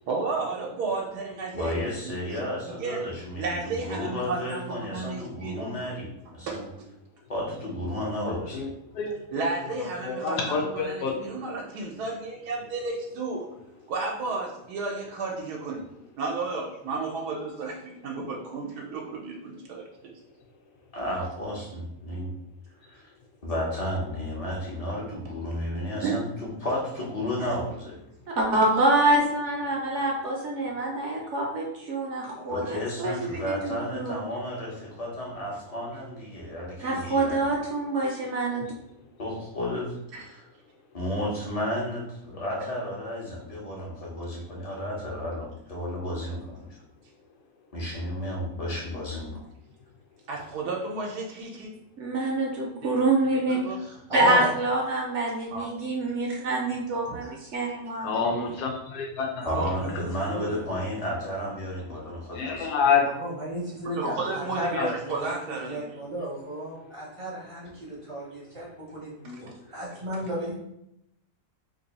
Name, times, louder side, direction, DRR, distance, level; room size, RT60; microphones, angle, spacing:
voice 1, 0.1-1.7 2.0-2.5 2.8-3.0 3.4-4.6 4.9-5.9 6.4-6.9 9.3-13.5 13.9-15.8 16.2-20.1 26.0-26.2 27.4-27.5 40.1-40.2 50.3-51.7 52.8-52.9 53.5-53.8 55.5-55.7 57.1-57.2 59.5-59.7 64.0-65.9, right 3 dB, 85° right, -1 dB, 1.2 m, -32 dB
voice 2, 1.5-6.6 7.3-8.7 20.9-22.3 22.8-23.1 23.4-28.0 32.5-37.5 39.2-39.9 40.2-40.4 40.9-46.6 47.7-49.4 59.4-62.7, left 1 dB, 35° left, -3 dB, 0.7 m, -32 dB
voice 3, 10.1-11.1 58.0-59.3 62.4-63.0 64.8-64.9, left 6 dB, 90° left, 1 dB, 1.1 m, -26 dB
voice 4, 28.3-34.2 36.8-38.6 52.0-53.6 54.1-58.2, right 2 dB, 60° right, -1 dB, 0.8 m, -26 dB
voice 5, 53.8-54.5 59.4-60.7 63.0-65.4 65.6-70.5, right 1 dB, 30° right, -5 dB, 0.6 m, -34 dB
3.0 x 2.6 x 4.0 m, 0.81 s
omnidirectional pair, 1.7 m